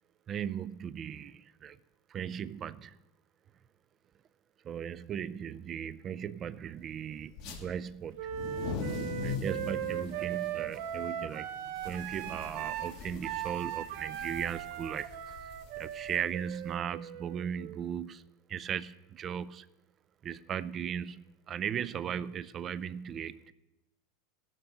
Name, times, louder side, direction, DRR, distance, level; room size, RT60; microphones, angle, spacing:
voice 1, 0.3-1.8 2.1-3.0 4.6-8.3 9.2-11.6 11.8-15.4 15.8-19.7 20.2-23.5, right 8 dB, 25° right, 0.4 m, -37 dB
sound 1, 7.3-7.6 8.2-16.7, left 4 dB, 45° left, 2.4 m, -42 dB
Wind instrument woodwind instrument, 8.1-18.0, right 11 dB, 55° right, 0.8 m, -38 dB
15.0 x 12.0 x 3.9 m
supercardioid pair, 155°, 0 cm